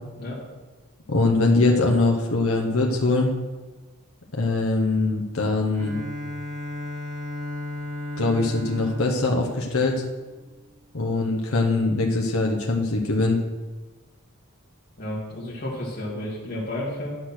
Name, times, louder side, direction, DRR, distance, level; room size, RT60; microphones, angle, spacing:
voice 1, 1.1-3.3 4.3-6.0 8.2-10.0 10.9-13.4, left 2 dB, 70° left, 0 dB, 1.2 m, -22 dB
Bowed string instrument, 5.7-10.5, left 1 dB, 35° right, 1.5 m, -35 dB
voice 2, 15.0-17.2, left 1 dB, 45° left, -7 dB, 2.2 m, -32 dB
11.0 x 6.5 x 6.1 m, 1.2 s
head